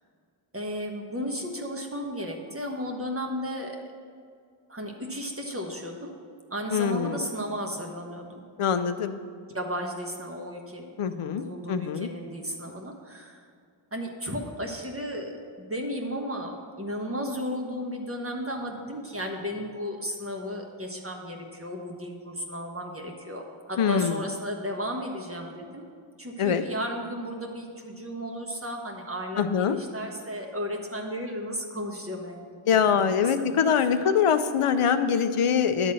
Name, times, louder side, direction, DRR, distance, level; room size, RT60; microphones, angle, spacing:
voice 1, 0.5-3.8 4.7-6.1 6.5-8.4 9.5-13.4 13.9-25.9 26.2-32.6 33.1-33.7 34.0-34.1, equal, 25° right, 1 dB, 1.3 m, -34 dB
voice 2, 6.7-7.2 8.6-9.1 11.0-12.1 23.8-24.2 26.4-26.6 29.4-29.8 32.7-35.9, left 7 dB, 90° left, 10 dB, 0.6 m, -24 dB
11.0 x 4.0 x 7.6 m, 2.2 s
wide cardioid pair, 60°, 50 cm